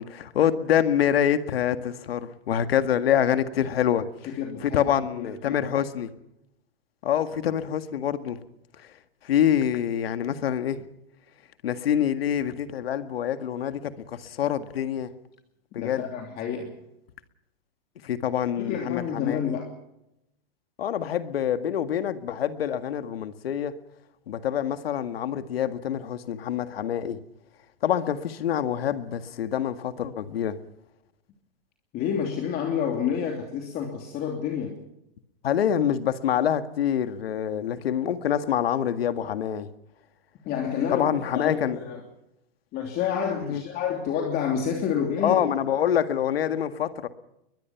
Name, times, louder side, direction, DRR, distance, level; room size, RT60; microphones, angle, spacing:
voice 1, 0.0-4.0 4.6-6.1 7.0-8.4 9.2-10.8 11.6-15.1 15.7-16.0 18.0-19.5 20.8-23.7 24.3-27.2 27.8-30.5 35.4-39.7 40.9-41.8 43.4-43.6 45.2-47.1, left 9 dB, 85° left, 1.9 m, -26 dB
voice 2, 4.2-5.6 15.8-16.7 18.6-19.7 31.9-34.8 40.4-42.0 42.7-45.4, left 7 dB, 35° left, 3.0 m, -29 dB
22.5 x 21.0 x 5.9 m
hypercardioid pair, 145°, 29 cm